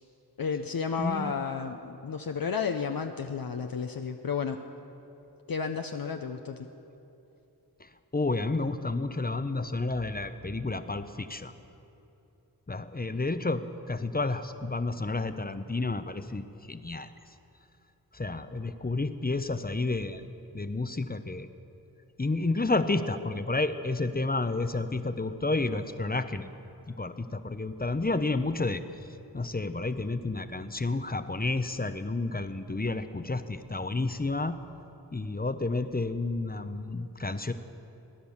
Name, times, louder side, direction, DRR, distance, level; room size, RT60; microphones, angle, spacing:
voice 1, 0.4-4.6 5.5-6.7, left 6 dB, 60° left, 5 dB, 0.8 m, -32 dB
voice 2, 1.0-1.5 7.8-11.5 12.7-17.1 18.1-20.2 20.5-21.5 22.2-26.5 26.9-28.8 29.3-34.5 35.1-37.5, left 3 dB, 25° left, 10 dB, 0.8 m, -30 dB
19.5 x 10.0 x 7.2 m, 2.8 s
cardioid pair, 45°, 40 cm